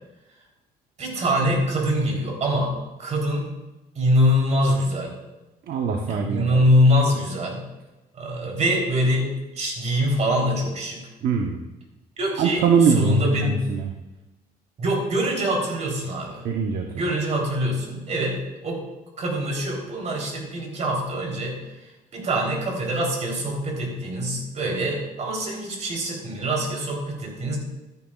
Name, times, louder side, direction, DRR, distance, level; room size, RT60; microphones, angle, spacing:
voice 1, 1.0-2.7 3.0-3.5 3.9-5.1 6.1-7.6 8.1-11.0 12.2-13.6 14.8-16.4 16.9-18.8 19.2-21.6 22.1-27.6, equal, 40° right, 0 dB, 3.6 m, -24 dB
voice 2, 5.7-6.6 11.2-11.6 12.4-13.9 16.4-16.9, right 5 dB, 60° right, 3 dB, 0.9 m, -22 dB
13.5 x 10.0 x 2.4 m, 1.1 s
cardioid pair, 110°, 17 cm